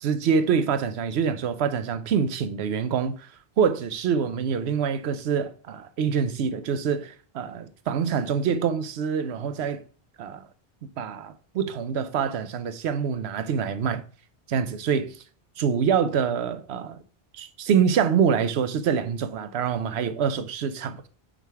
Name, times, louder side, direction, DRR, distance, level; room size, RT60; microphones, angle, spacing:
voice 1, 0.0-3.3 3.6-9.8 10.2-10.5 11.0-14.0 14.5-15.2 15.6-17.0 17.3-21.0, right 7 dB, 90° right, 0.9 m, -25 dB
4.7 x 3.8 x 5.5 m
omnidirectional pair, 1.1 m